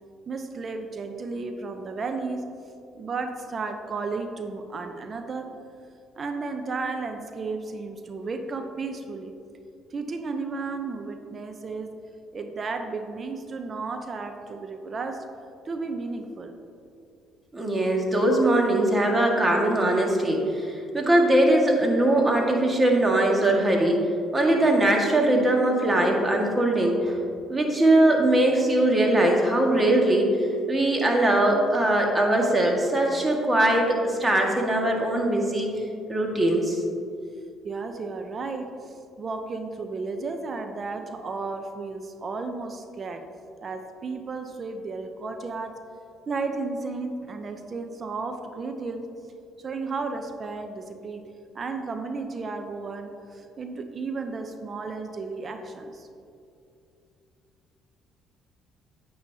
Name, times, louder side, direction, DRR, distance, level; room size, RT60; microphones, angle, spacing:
voice 1, 0.3-2.4 2.9-5.5 6.1-9.4 9.9-11.9 12.3-15.2 15.6-16.6 37.6-43.2 43.6-45.8 46.3-49.1 49.6-51.2 51.5-56.1, right 4 dB, 45° right, 6 dB, 0.8 m, -33 dB
voice 2, 17.5-24.0 24.3-27.2 27.5-35.7 36.1-36.8, right 1 dB, 25° right, 1 dB, 1.8 m, -21 dB
9.5 x 8.7 x 2.9 m, 2.6 s
supercardioid pair, 65°, 0 cm